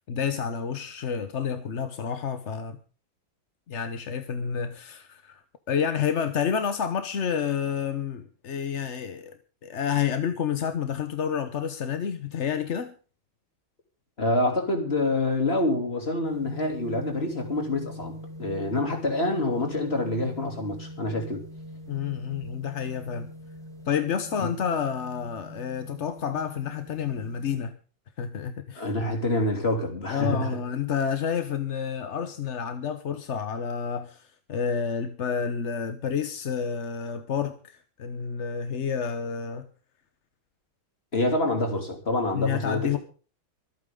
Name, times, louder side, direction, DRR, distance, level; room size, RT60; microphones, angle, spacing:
voice 1, 0.1-2.8 3.7-5.4 5.7-9.4 9.6-12.9 21.9-23.3 23.8-27.8 28.2-28.9 30.1-39.7 42.3-43.0, left 7 dB, 45° left, 1.0 m, -29 dB
voice 2, 14.2-21.4 24.4-24.5 28.7-30.6 41.1-43.0, left 2 dB, 30° left, 3.2 m, -27 dB
sound 1, 16.2-27.6, equal, ahead, 3.9 m, -42 dB
25.0 x 9.0 x 3.7 m
omnidirectional pair, 2.2 m